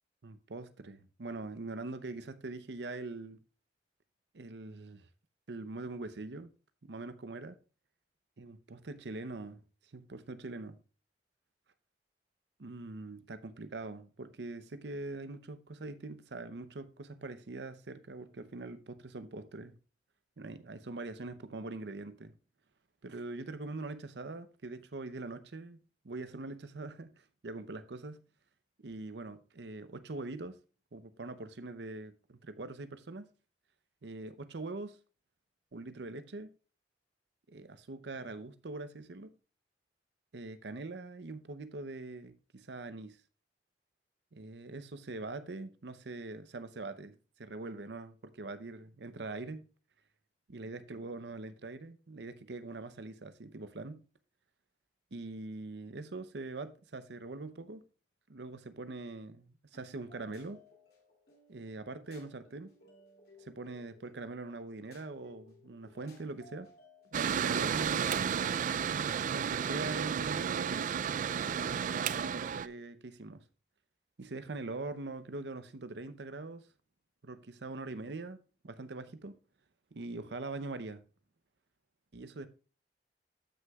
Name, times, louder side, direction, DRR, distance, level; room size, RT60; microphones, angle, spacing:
voice 1, 0.2-3.4 4.3-5.1 5.5-6.5 6.8-7.6 8.4-9.6 9.9-10.8 12.6-19.8 20.4-22.3 23.0-25.8 26.0-28.2 28.8-30.6 30.9-33.3 34.0-35.0 35.7-36.5 37.5-39.3 40.3-43.2 44.3-49.6 50.5-54.0 55.1-57.8 58.3-60.6 61.5-62.7 63.4-66.7 67.1-68.3 69.2-70.9 71.2-73.4 74.2-76.7 77.2-78.4 78.6-79.4 79.9-81.0 82.1-82.5, right 3 dB, 70° right, 0.7 m, -43 dB
sound 1, 59.7-71.9, left 1 dB, 65° left, 2.7 m, -61 dB
Mechanical fan, 67.1-72.7, right 7 dB, 45° right, 0.3 m, -32 dB
13.5 x 6.3 x 2.4 m
head